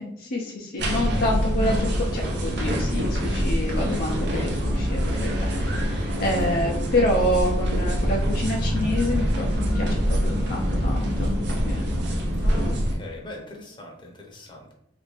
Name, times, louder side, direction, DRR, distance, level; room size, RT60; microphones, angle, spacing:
voice 1, 0.0-11.3 11.6-11.8, left 1 dB, 55° left, -1 dB, 0.5 m, -28 dB
sound 1, 0.8-13.0, equal, 65° right, 0.7 m, -25 dB
voice 2, 6.2-6.5 11.9-14.7, left 2 dB, 25° left, -1 dB, 0.8 m, -42 dB
3.2 x 2.5 x 3.3 m, 0.74 s
head